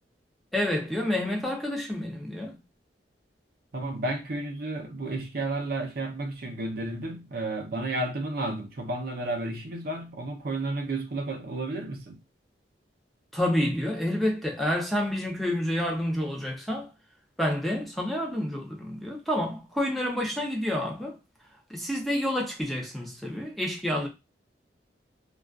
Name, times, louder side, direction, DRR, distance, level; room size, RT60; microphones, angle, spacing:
voice 1, 0.5-2.6 13.3-16.9 17.4-21.2 21.7-24.1, left 1 dB, ahead, 0.5 m, -29 dB
voice 2, 3.7-12.2, right 2 dB, 55° right, 0.5 m, -32 dB
2.3 x 2.3 x 2.3 m
head